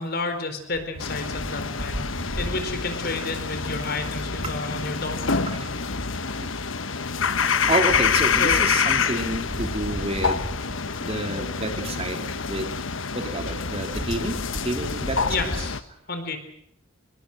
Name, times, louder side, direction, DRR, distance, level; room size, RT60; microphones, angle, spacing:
voice 1, 0.0-2.0 2.4-5.4 8.4-8.7 15.3-15.8 16.1-16.4, left 3 dB, 50° left, 7 dB, 4.3 m, -30 dB
sound 1, 1.0-15.8, left 5 dB, 70° left, 1.2 m, -27 dB
voice 2, 7.7-10.4 11.0-12.2 12.4-12.7 13.1-14.3 14.6-15.5, right 1 dB, 30° right, 5 dB, 3.1 m, -28 dB
25.5 x 21.5 x 7.7 m, 0.68 s
head